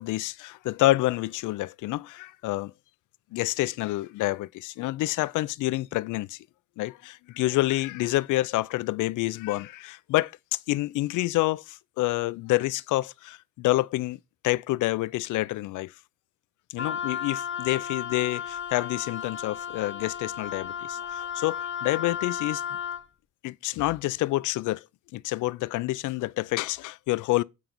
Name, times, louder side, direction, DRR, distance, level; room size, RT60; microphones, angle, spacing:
voice 1, 0.0-2.7 3.3-6.4 6.8-15.9 16.7-22.6 23.4-24.8 25.1-27.4, left 18 dB, 85° left, 0.5 m, -28 dB
Wind instrument woodwind instrument, 16.8-23.0, left 8 dB, 40° left, 1.1 m, -34 dB
9.2 x 3.9 x 7.0 m
cardioid pair, 90°, 30 cm